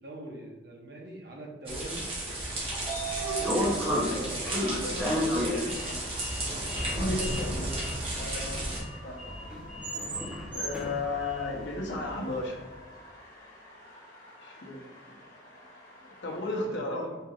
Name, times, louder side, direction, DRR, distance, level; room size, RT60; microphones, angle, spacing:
voice 1, 0.0-2.6 3.4-4.6 16.6-17.2, right 1 dB, 55° right, -1 dB, 0.8 m, -42 dB
sound 1, 1.7-8.8, right 1 dB, 30° right, 1.0 m, -34 dB
Sliding door, 2.3-12.4, equal, 5° right, 0.6 m, -33 dB
sound 2, 2.7-16.7, left 1 dB, 50° left, 1.3 m, -50 dB
voice 2, 4.6-7.8 8.2-8.7 9.0-9.2 10.5-12.6 14.4-15.2 16.0-17.1, left 2 dB, 70° left, -1 dB, 0.8 m, -35 dB
4.4 x 3.4 x 2.3 m, 1.2 s
head